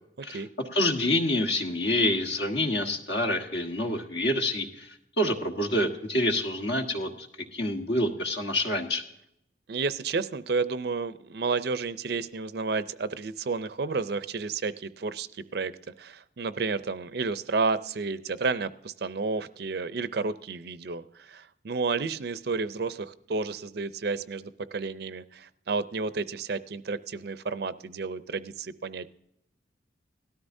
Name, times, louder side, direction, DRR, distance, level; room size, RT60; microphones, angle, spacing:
voice 1, 0.2-0.5 9.7-15.7 16.0-29.1, right 4 dB, 55° right, 14 dB, 0.5 m, -31 dB
voice 2, 0.7-7.3 7.5-9.0, left 1 dB, 65° left, 3 dB, 1.5 m, -27 dB
18.0 x 13.0 x 2.7 m, 0.77 s
head